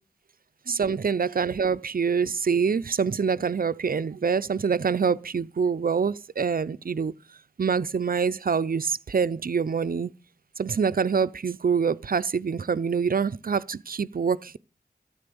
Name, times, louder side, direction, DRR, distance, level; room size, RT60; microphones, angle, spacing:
voice 1, 0.7-7.1 7.6-10.1 10.6-14.6, right 6 dB, 60° right, 0.6 m, -25 dB
13.5 x 8.8 x 6.9 m
wide cardioid pair, 65°, 17 cm